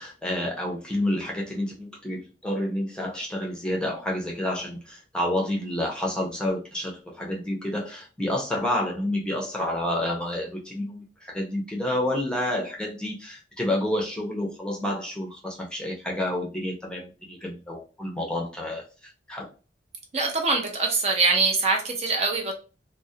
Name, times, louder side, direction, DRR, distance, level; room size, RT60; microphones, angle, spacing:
voice 1, 0.0-18.8 19.3-19.5, left 1 dB, 5° left, -1 dB, 0.6 m, -29 dB
voice 2, 20.1-22.6, right 3 dB, 35° right, 2 dB, 0.5 m, -23 dB
2.3 x 2.0 x 2.6 m, 0.33 s
head